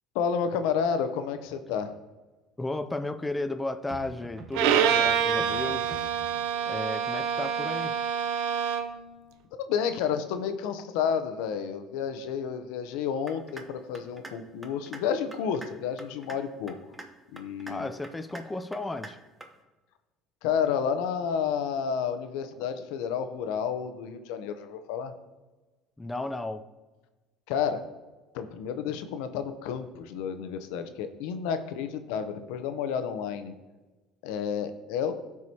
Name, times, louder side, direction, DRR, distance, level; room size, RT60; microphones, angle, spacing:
voice 1, 0.1-1.9 9.6-16.7 17.3-17.9 20.4-25.1 27.5-27.8 28.3-33.5 34.2-35.1, left 7 dB, 85° left, 9 dB, 0.7 m, -30 dB
sound 1, 1.2-1.8 3.9-6.5, right 2 dB, 30° right, 1.1 m, -46 dB
voice 2, 2.6-6.1 6.7-8.0 17.7-19.2 26.0-26.7, left 2 dB, 10° left, 10 dB, 0.4 m, -34 dB
Bowed string instrument, 4.5-9.0, right 8 dB, 80° right, 0.6 m, -26 dB
sound 2, 13.3-13.7 13.9-14.3 14.6-15.0 15.3-15.7 16.0-16.4 16.7-17.1 17.4-17.7 18.0-18.4 18.7-19.1 19.4-19.5, right 2 dB, 10° right, 0.8 m, -43 dB
13.5 x 4.8 x 2.8 m, 1.2 s
cardioid pair, 125°, 0 cm